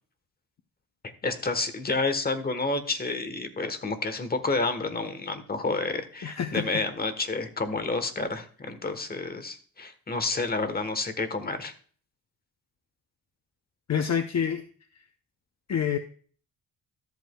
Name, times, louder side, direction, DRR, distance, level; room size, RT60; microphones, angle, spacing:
voice 1, 1.0-11.7, left 3 dB, 25° left, 9 dB, 1.2 m, -30 dB
voice 2, 6.2-6.8 13.9-14.6 15.7-16.0, left 8 dB, 45° left, 7 dB, 0.7 m, -27 dB
13.0 x 8.2 x 2.3 m, 0.43 s
wide cardioid pair, 130°, 37 cm